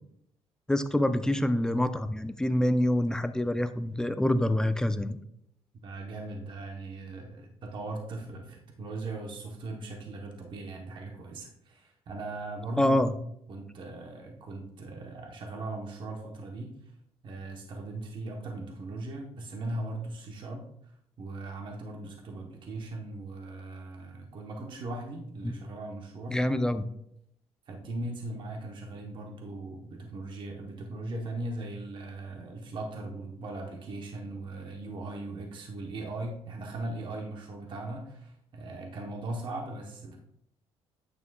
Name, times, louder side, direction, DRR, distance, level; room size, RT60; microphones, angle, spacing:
voice 1, 0.7-5.2 12.8-13.1 25.4-25.5 26.3-26.8, left 1 dB, 5° left, 10 dB, 0.4 m, -26 dB
voice 2, 5.8-13.0 13.5-16.9 17.2-26.5 27.7-40.2, right 2 dB, 45° right, 1 dB, 1.0 m, -39 dB
8.8 x 6.8 x 2.3 m, 0.74 s
cardioid pair, 135°, 11 cm